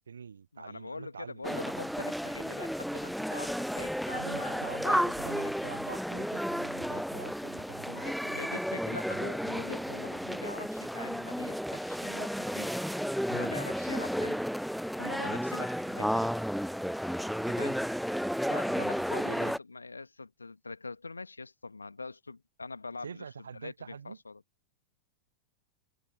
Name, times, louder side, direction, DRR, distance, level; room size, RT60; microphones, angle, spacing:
voice 1, 0.0-1.6 4.1-8.1 18.7-18.9 23.0-24.2, right 6 dB, 70° right, 0.5 m, -45 dB
voice 2, 0.5-5.1 5.4-5.5 7.9-14.4 15.0-16.3 17.5-17.8 18.5-23.3 23.5-24.4, left 3 dB, 80° left, 1.8 m, -43 dB
sound 1, 1.4-19.6, equal, ahead, 0.4 m, -33 dB
figure-of-eight pair, 90°, 0 cm